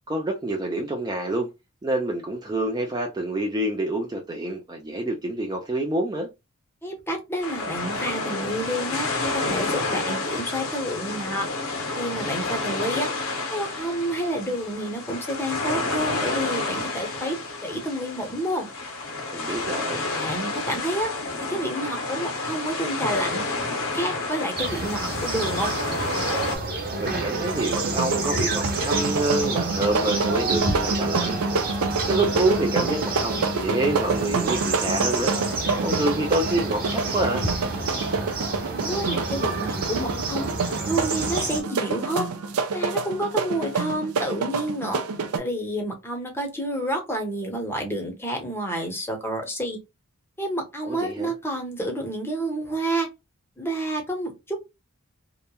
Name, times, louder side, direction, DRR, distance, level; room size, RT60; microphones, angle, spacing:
voice 1, 0.1-1.5 1.8-6.3 19.3-20.0 27.0-31.4 32.1-35.3 35.8-37.4 50.9-51.3, right 2 dB, 20° right, 0.4 m, -27 dB
voice 2, 6.8-11.5 11.9-13.1 13.5-17.4 17.6-18.7 20.1-21.1 21.4-23.4 23.9-25.7 38.7-40.5 40.8-42.3 42.7-45.0 45.4-49.8 50.4-53.1 53.6-54.6, right 1 dB, 10° left, 0.7 m, -29 dB
sound 1, 7.4-26.6, left 3 dB, 70° left, 0.8 m, -30 dB
sound 2, 24.6-41.6, right 3 dB, 45° right, 0.9 m, -29 dB
sound 3, 26.9-45.4, right 4 dB, 80° right, 0.5 m, -27 dB
2.9 x 2.1 x 2.2 m
head